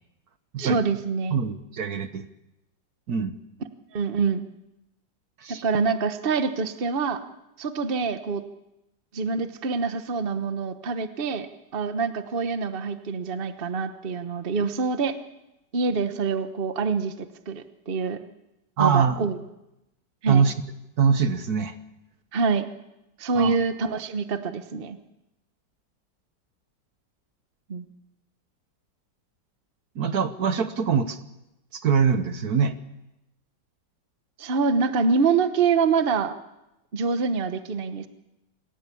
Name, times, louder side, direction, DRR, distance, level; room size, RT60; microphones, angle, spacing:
voice 1, 0.6-1.4 3.9-4.5 5.5-7.2 7.6-8.4 9.1-11.5 11.7-15.2 15.7-18.2 18.8-19.3 20.2-20.4 22.3-22.7 23.2-25.0 27.7-27.8 34.4-36.3 36.9-38.1, right 5 dB, 35° right, 9 dB, 1.2 m, -25 dB
voice 2, 1.3-2.2 3.1-3.4 5.4-5.6 18.8-19.2 20.3-20.5 21.0-21.7 23.3-23.6 29.9-31.2 31.7-32.7, right 6 dB, 60° right, 10 dB, 1.5 m, -23 dB
27.0 x 15.5 x 8.6 m, 0.91 s
omnidirectional pair, 1.9 m